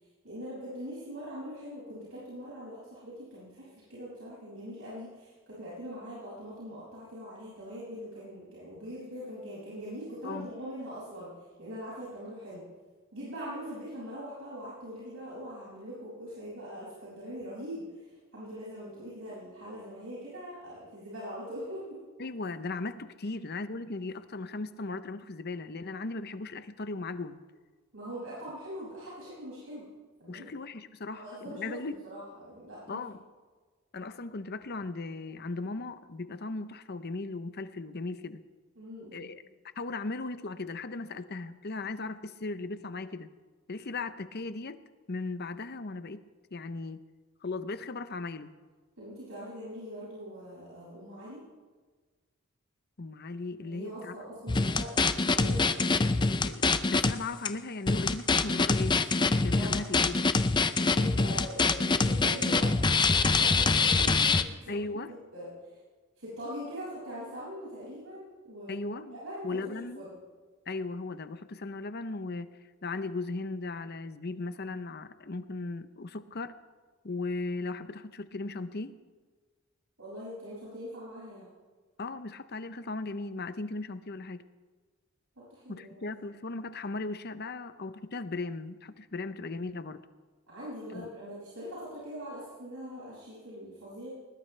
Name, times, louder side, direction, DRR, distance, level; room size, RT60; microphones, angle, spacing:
voice 1, 0.2-11.3 11.6-12.6 13.1-22.0 27.9-29.9 30.2-30.5 31.1-33.0 38.7-39.3 49.0-51.4 53.6-55.8 59.5-59.8 60.8-64.7 65.1-65.8 66.2-69.6 69.9-70.2 80.0-81.5 85.4-86.1 90.5-94.1, equal, 80° right, -8 dB, 6.7 m, -42 dB
voice 2, 22.2-27.4 30.3-32.0 32.9-33.2 33.9-38.4 39.1-39.4 39.8-43.3 43.7-44.8 45.1-46.2 46.5-47.0 47.4-48.5 53.0-54.2 56.4-60.2 64.7-65.1 68.7-70.1 70.7-72.5 72.8-76.6 77.0-79.0 82.0-84.4 85.7-90.0 90.9-91.1, left 3 dB, 50° left, 12 dB, 0.8 m, -37 dB
sound 1, 54.5-57.1 57.5-57.6 57.9-64.4, left 4 dB, 20° left, 0.5 m, -25 dB
20.5 x 20.0 x 3.4 m, 1.4 s
head